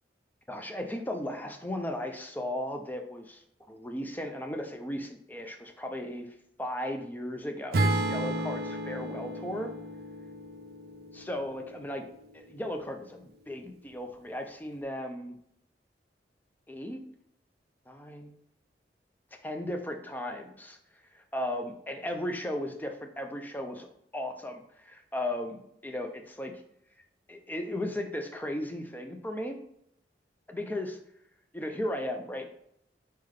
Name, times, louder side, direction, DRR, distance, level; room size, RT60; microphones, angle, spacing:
voice 1, 0.5-3.4 3.7-6.3 6.6-9.7 11.1-12.0 12.3-15.3 16.7-17.0 17.9-18.3 19.4-20.8 21.1-23.9 24.1-26.6 27.3-29.6 30.5-31.0 31.5-32.5, left 1 dB, 10° left, 5 dB, 0.5 m, -36 dB
Acoustic guitar / Strum, 7.7-11.9, right 2 dB, 60° right, 0.5 m, -32 dB
4.3 x 3.4 x 3.7 m, 0.74 s
head